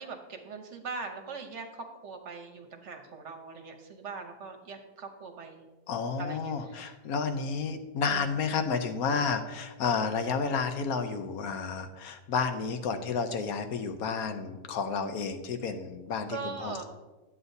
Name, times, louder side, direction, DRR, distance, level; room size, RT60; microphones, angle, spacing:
voice 1, 0.0-5.7 6.2-6.9 8.1-8.2 16.3-16.8, right 4 dB, 55° right, 5 dB, 1.0 m, -41 dB
voice 2, 5.9-16.8, left 5 dB, 80° left, 7 dB, 1.2 m, -31 dB
11.0 x 7.9 x 2.7 m, 1.2 s
omnidirectional pair, 1.5 m